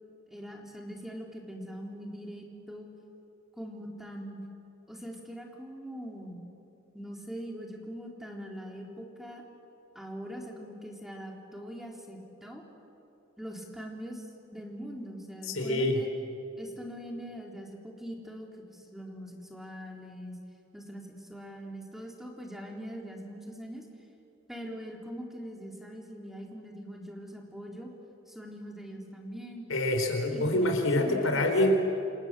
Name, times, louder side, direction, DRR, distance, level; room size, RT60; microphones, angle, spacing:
voice 1, 0.3-2.9 3.6-4.4 4.9-6.5 6.9-9.4 10.0-12.6 13.4-14.2 14.5-16.1 16.6-20.4 20.7-23.9 24.5-27.9 28.3-29.6 30.3-30.6 31.0-31.5, equal, ahead, 0 dB, 3.7 m, -42 dB
voice 2, 15.5-16.0 29.7-31.7, left 1 dB, 85° left, 5 dB, 4.3 m, -26 dB
28.5 x 28.0 x 7.6 m, 2.8 s
head